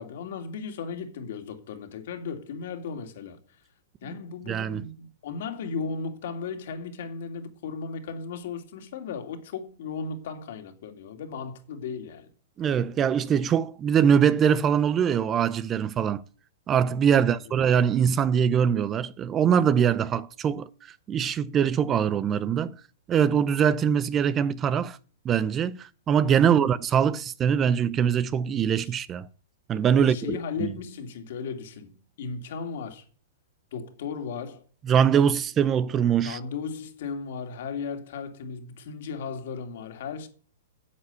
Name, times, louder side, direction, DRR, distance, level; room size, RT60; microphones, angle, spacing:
voice 1, 0.0-3.4 4.0-12.3 17.2-17.6 26.4-26.6 28.8-28.9 30.0-33.1 33.7-34.6 36.2-40.3, left 5 dB, 65° left, 2.8 m, -36 dB
voice 2, 4.5-4.9 12.6-16.2 16.7-20.7 21.1-22.7 23.1-25.0 25.2-29.3 29.7-30.7 34.9-36.4, right 8 dB, 25° right, 0.7 m, -23 dB
9.8 x 8.1 x 8.3 m
hypercardioid pair, 125°, 0 cm